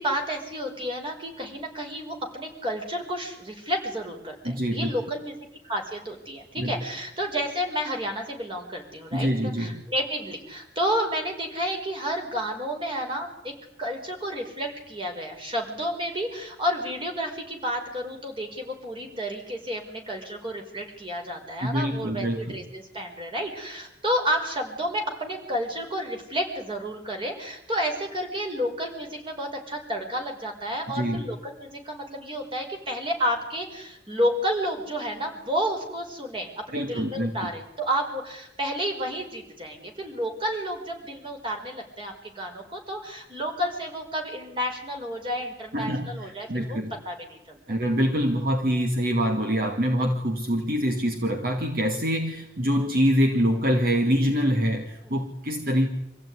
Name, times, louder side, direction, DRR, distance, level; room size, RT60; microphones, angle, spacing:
voice 1, 0.0-5.3 5.6-13.5 13.8-46.8 47.1-47.6, equal, 30° right, 2 dB, 5.1 m, -31 dB
voice 2, 4.4-4.9 6.6-6.7 9.1-9.8 21.6-22.6 30.9-31.2 36.7-37.5 45.7-46.9 47.7-55.9, equal, 55° right, 4 dB, 2.2 m, -25 dB
26.0 x 15.5 x 9.8 m, 0.81 s
head